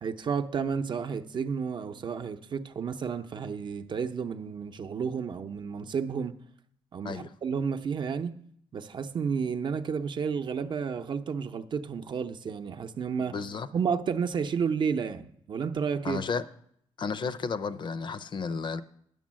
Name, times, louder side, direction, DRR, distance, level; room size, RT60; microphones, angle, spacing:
voice 1, 0.0-6.4 6.9-8.4 8.7-13.4 13.7-16.2, right 6 dB, 45° right, 0.7 m, -31 dB
voice 2, 13.3-13.7 16.0-16.4 17.0-18.8, left 5 dB, 45° left, 0.6 m, -32 dB
10.5 x 6.9 x 7.4 m
cardioid pair, 130°, 11 cm